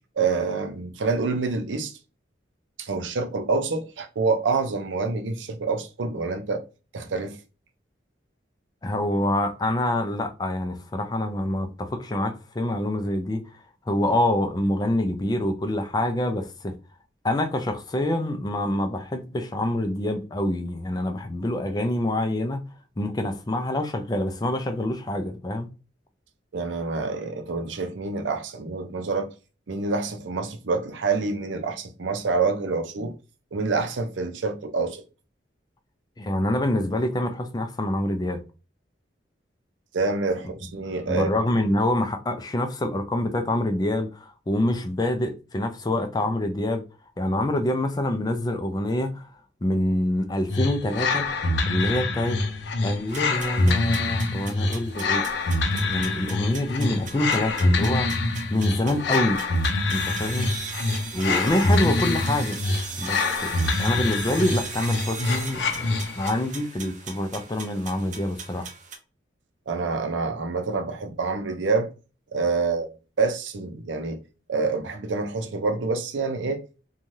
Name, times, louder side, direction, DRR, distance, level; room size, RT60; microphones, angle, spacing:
voice 1, 0.2-1.9 2.8-6.6 6.9-7.4 26.5-29.3 29.7-33.1 33.5-35.0 39.9-41.3 69.7-71.9 72.3-72.9 73.2-74.2 74.5-76.6, right 4 dB, 85° right, 0.6 m, -27 dB
voice 2, 8.8-13.5 13.9-16.7 17.2-22.6 23.0-25.7 36.2-38.4 41.1-46.8 47.2-49.3 49.6-51.3 51.7-52.4 52.8-55.2 55.7-58.1 58.5-59.4 59.9-60.5 61.1-62.6 63.0-68.7, left 1 dB, 20° left, 0.4 m, -26 dB
sound 1, 50.5-66.4, left 2 dB, 70° left, 0.5 m, -25 dB
sound 2, 53.1-69.0, right 5 dB, 40° right, 0.6 m, -39 dB
3.1 x 2.3 x 2.6 m
head